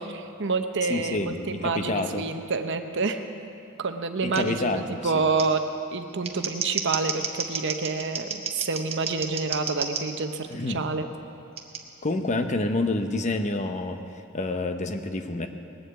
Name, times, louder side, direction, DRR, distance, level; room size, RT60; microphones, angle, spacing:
voice 1, 0.0-3.2 3.8-11.1, right 4 dB, 60° right, 7 dB, 0.9 m, -28 dB
voice 2, 0.9-2.3 4.2-5.2 10.5-10.8 12.0-14.0 14.3-15.5, left 2 dB, 35° left, 7 dB, 0.8 m, -28 dB
Scissors, 4.3-4.4 5.4-5.5 6.1-10.0 11.6-11.8, right 6 dB, 30° right, 1.1 m, -31 dB
20.0 x 7.9 x 8.1 m, 2.6 s
head